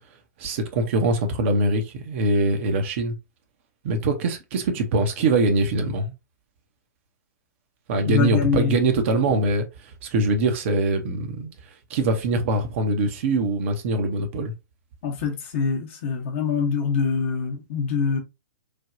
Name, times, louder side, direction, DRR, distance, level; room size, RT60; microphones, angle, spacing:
voice 1, 0.4-3.2 3.8-6.1 7.9-11.5 11.9-14.5, right 2 dB, 45° right, 0.7 m, -23 dB
voice 2, 8.0-8.8 15.0-18.2, left 6 dB, 40° left, 0.9 m, -24 dB
3.3 x 2.2 x 2.5 m
figure-of-eight pair, 110°, 10 cm